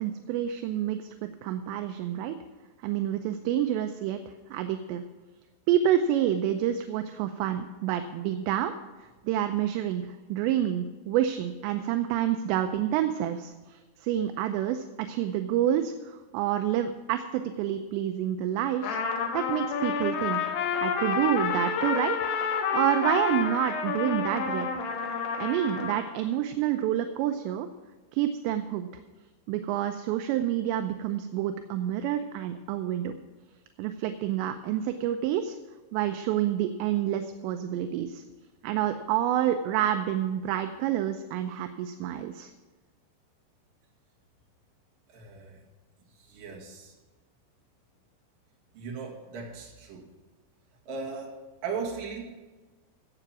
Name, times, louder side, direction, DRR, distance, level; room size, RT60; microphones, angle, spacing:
voice 1, 0.0-2.4 2.8-4.2 4.5-5.0 5.7-8.7 9.0-19.0 19.3-20.4 20.8-22.2 22.4-24.7 25.4-27.7 28.1-28.9 29.5-33.1 33.8-35.6 35.9-38.2 38.6-42.5, right 11 dB, 80° right, 7 dB, 2.7 m, -28 dB
Trumpet, 18.8-26.0, left 6 dB, 80° left, 3.7 m, -29 dB
voice 2, 45.1-45.6 46.2-46.9 48.7-50.1 50.9-51.4 51.6-52.2, right 5 dB, 55° right, -2 dB, 3.4 m, -37 dB
15.0 x 7.8 x 6.0 m, 1.2 s
omnidirectional pair, 5.4 m